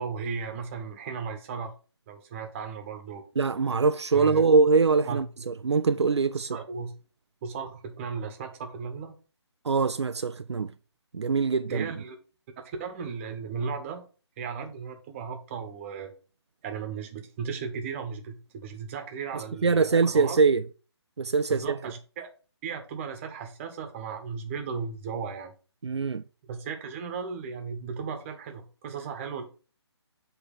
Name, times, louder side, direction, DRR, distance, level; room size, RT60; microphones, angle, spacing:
voice 1, 0.0-1.7 2.1-3.2 4.1-4.4 5.1-5.2 6.4-6.9 7.4-9.1 11.7-12.2 12.6-14.1 14.4-16.1 16.6-20.4 21.5-22.3 22.6-25.5 26.4-29.4, right 5 dB, 25° right, 1.3 m, -36 dB
voice 2, 3.4-6.6 9.6-10.7 11.1-11.9 19.3-20.6 21.2-21.8 25.8-26.2, right 4 dB, 75° right, 0.4 m, -23 dB
7.9 x 3.4 x 5.4 m
figure-of-eight pair, 140°, 15 cm